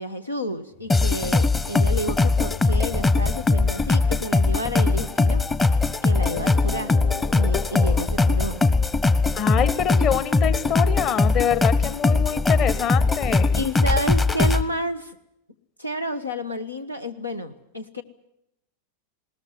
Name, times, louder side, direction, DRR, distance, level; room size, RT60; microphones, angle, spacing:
voice 1, 0.0-5.5 6.0-7.0 7.3-8.6 11.2-11.4 12.1-12.2 13.5-15.2 15.8-18.0, equal, 85° left, 8 dB, 1.3 m, -30 dB
sound 1, 0.7-5.5 6.2-8.4, left 8 dB, 55° left, 2.7 m, -39 dB
sound 2, 0.9-14.6, left 3 dB, 15° left, 1.0 m, -21 dB
voice 2, 9.3-13.6, left 8 dB, 35° left, 14 dB, 1.3 m, -25 dB
21.0 x 18.5 x 9.7 m, 0.82 s
figure-of-eight pair, 90°, 0 cm